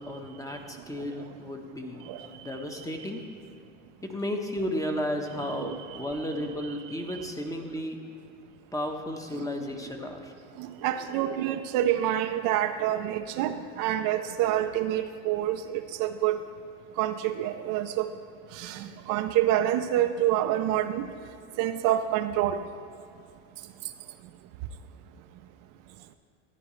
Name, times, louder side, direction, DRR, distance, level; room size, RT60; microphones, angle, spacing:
voice 1, 0.0-3.2 4.0-8.0 8.7-10.3, left 1 dB, 10° left, 3 dB, 1.1 m, -34 dB
voice 2, 5.4-6.7 9.4-9.5 10.6-16.4 17.0-18.1 18.5-21.1 21.6-22.6, right 12 dB, 60° right, 8 dB, 0.6 m, -27 dB
14.0 x 9.5 x 3.2 m, 2.5 s
supercardioid pair, 90°, 36 cm